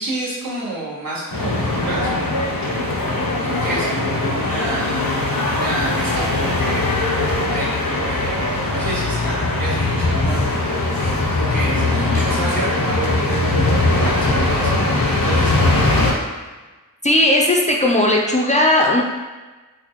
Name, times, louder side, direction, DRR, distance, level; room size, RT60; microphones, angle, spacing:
voice 1, 0.0-2.3 3.1-7.1 7.5-10.5 11.3-15.7, right 1 dB, 75° right, -9 dB, 1.3 m, -29 dB
sound 1, 1.3-16.1, left 2 dB, 80° left, 0.7 m, -20 dB
voice 2, 17.0-19.0, left 1 dB, 20° left, -1 dB, 0.4 m, -16 dB
4.1 x 2.2 x 2.9 m, 1.2 s
wide cardioid pair, 50°, 34 cm